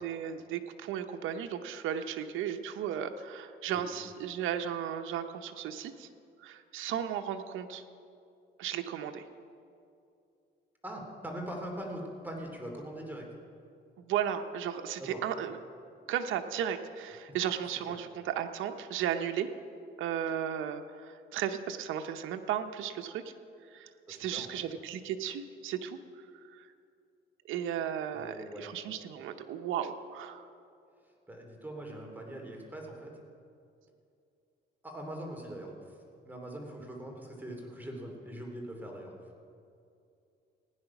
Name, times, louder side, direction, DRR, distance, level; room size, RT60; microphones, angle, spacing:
voice 1, 0.0-6.1 6.4-7.8 8.6-9.3 14.0-15.6 16.1-19.5 20.0-23.3 23.6-26.7 27.4-30.5, right 9 dB, 85° right, 7 dB, 0.8 m, -35 dB
voice 2, 10.8-13.3 15.1-15.2 17.7-17.8 24.1-24.5 28.1-28.7 31.3-33.1 34.8-36.0 36.2-39.1, right 1 dB, 10° right, 0 dB, 2.8 m, -42 dB
16.5 x 9.8 x 5.9 m, 2.5 s
cardioid pair, 90°, 20 cm